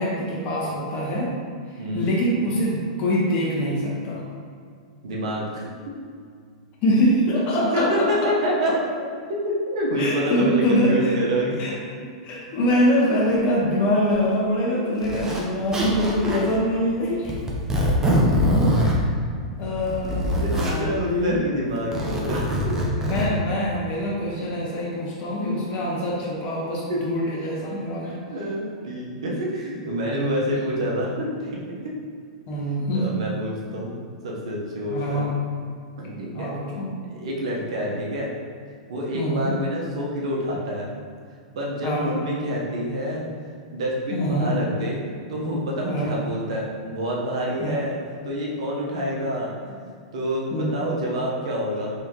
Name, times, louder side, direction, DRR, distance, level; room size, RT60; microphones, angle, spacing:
voice 1, 0.0-1.3 1.7-4.2 6.8-8.3 10.0-11.2 11.6-11.7 12.2-17.4 19.6-21.4 23.0-28.2 30.0-30.5 32.5-33.1 34.9-35.3 36.3-36.9 39.1-39.5 41.8-42.1 44.1-44.5 45.9-46.1 47.6-47.8 50.5-50.8, equal, 40° left, -4 dB, 1.2 m, -24 dB
voice 2, 5.0-5.7 7.5-8.8 9.4-11.6 16.2-16.4 20.4-22.8 26.9-27.0 28.3-32.0 32.9-33.9 34.2-35.2 36.0-36.5 37.1-38.3 38.9-40.9 41.5-43.2 43.7-51.9, equal, 70° right, -3 dB, 0.9 m, -27 dB
Zipper (clothing), 14.1-14.2 15.0-15.4 15.7-16.5 17.2-19.0 19.7-20.8 21.8-23.3, equal, 15° right, 0.7 m, -23 dB
3.6 x 3.3 x 2.9 m, 2.1 s
hypercardioid pair, 115°, 3 cm